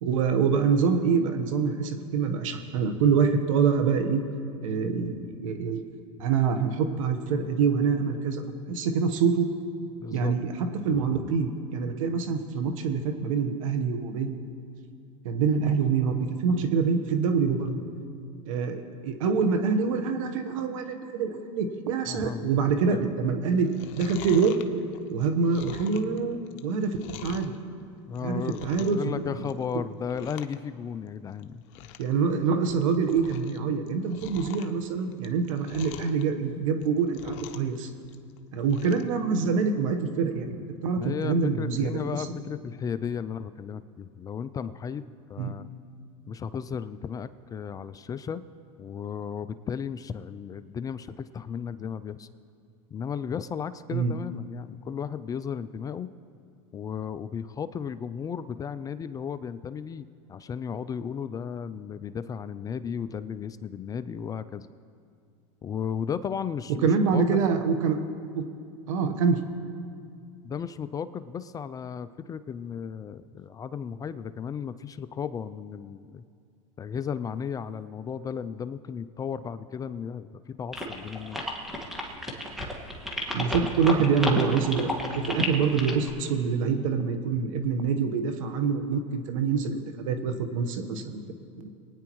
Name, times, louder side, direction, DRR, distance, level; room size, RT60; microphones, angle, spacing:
voice 1, 0.0-4.2 4.6-5.8 6.2-8.4 8.7-9.5 10.1-10.5 10.8-14.4 15.2-17.7 18.4-23.7 24.0-24.6 25.1-27.5 28.2-29.1 32.0-37.9 38.5-40.6 40.8-42.3 45.4-45.5 53.9-54.1 66.8-68.0 68.3-68.4 68.9-69.4 83.3-91.2 91.6-91.7, right 5 dB, 75° right, 7 dB, 1.2 m, -25 dB
voice 2, 10.0-10.4 10.9-11.3 22.1-22.5 22.9-23.0 28.1-31.6 41.0-45.7 46.3-48.4 48.8-52.3 52.9-56.1 56.7-64.7 65.6-67.4 70.4-76.2 76.8-81.5, left 7 dB, 20° left, 14 dB, 0.3 m, -35 dB
Chewing mastication, 23.6-27.6 28.0-29.1 29.4-29.7 30.0-30.6 30.9-31.0 31.4-31.5 31.7-32.1 32.5-33.6 33.9-36.2 36.7-37.8 38.0-39.1 39.5-39.6, left 11 dB, 60° left, 0.8 m, -45 dB
sound 1, 80.7-86.1, left 1 dB, ahead, 1.7 m, -31 dB
23.0 x 9.7 x 3.1 m, 2.4 s
supercardioid pair, 115°, 17 cm